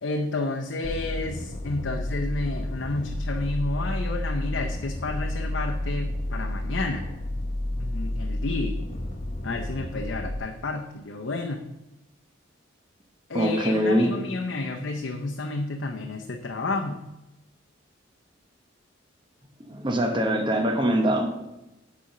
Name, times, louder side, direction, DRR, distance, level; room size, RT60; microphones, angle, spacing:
voice 1, 0.0-7.1 7.8-8.8 9.4-11.6 13.3-17.0, left 2 dB, 65° left, 3 dB, 0.7 m, -31 dB
sound 1, 0.8-10.4, left 1 dB, 35° left, 0.8 m, -31 dB
voice 2, 13.3-14.1 19.7-21.4, equal, 25° right, 4 dB, 0.9 m, -23 dB
8.4 x 4.3 x 6.4 m, 0.94 s
head